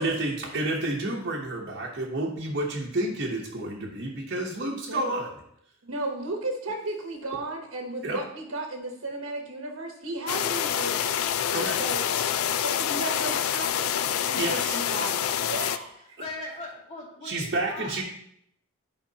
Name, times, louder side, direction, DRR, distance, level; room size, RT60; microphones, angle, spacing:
voice 1, 0.0-5.3 8.0-8.2 11.5-12.0 14.4-14.8 17.2-18.0, right 2 dB, 50° right, -3 dB, 0.9 m, -30 dB
voice 2, 5.8-11.2 11.8-12.0 12.6-16.0, right 2 dB, 75° right, 1 dB, 1.0 m, -34 dB
sound 1, 10.3-15.8, left 9 dB, 90° left, 0.4 m, -27 dB
voice 3, 16.0-18.0, left 2 dB, 30° left, -6 dB, 2.3 m, -40 dB
9.9 x 5.0 x 2.8 m, 0.74 s
head